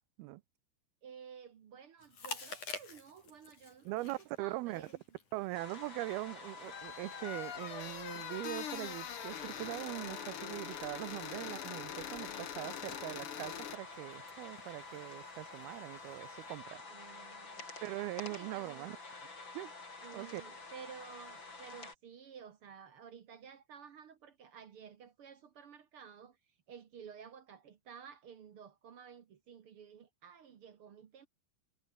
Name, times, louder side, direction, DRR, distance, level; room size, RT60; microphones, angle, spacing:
voice 1, 1.0-5.0 16.9-18.0 18.3-18.9 20.0-26.4 26.7-31.3, right 7 dB, 60° right, 1.4 m, -53 dB
Chewing mastication, 2.0-16.6, left 4 dB, 50° left, 6.8 m, -53 dB
voice 2, 3.9-4.9 5.3-16.8 17.8-19.0 19.5-19.7 20.1-20.4, right 19 dB, 80° right, 2.5 m, -41 dB
sound 1, 5.5-21.9, left 3 dB, 30° left, 5.2 m, -49 dB
sound 2, 6.7-13.8, left 10 dB, 70° left, 1.3 m, -44 dB
omnidirectional pair, 4.5 m